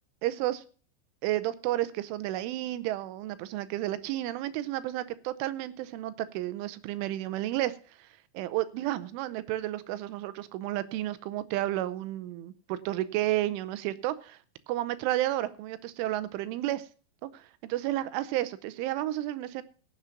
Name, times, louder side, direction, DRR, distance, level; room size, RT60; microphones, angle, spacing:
voice 1, 0.2-0.6 1.2-8.1 8.3-14.4 14.7-16.9 17.2-19.6, right 14 dB, 85° right, 3.3 m, -32 dB
17.0 x 7.3 x 5.8 m
omnidirectional pair, 5.5 m